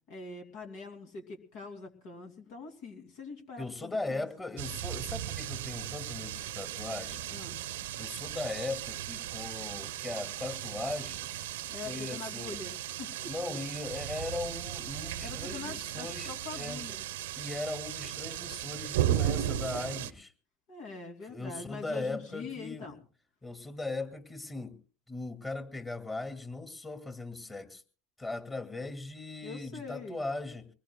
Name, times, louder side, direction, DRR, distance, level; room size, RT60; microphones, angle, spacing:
voice 1, 0.1-4.3 7.3-7.6 11.7-13.2 15.2-17.0 20.7-23.0 29.4-30.2, left 4 dB, 70° left, 4 dB, 2.8 m, -43 dB
voice 2, 3.6-7.2 8.0-11.3 11.8-12.6 13.2-16.8 17.4-20.3 21.3-22.9 23.4-24.8 25.1-27.8 28.2-30.7, left 2 dB, 20° left, 7 dB, 2.4 m, -38 dB
sound 1, 4.6-20.1, right 12 dB, 85° right, 0.8 m, -36 dB
24.0 x 20.0 x 2.3 m, 0.39 s
hypercardioid pair, 80°, 0 cm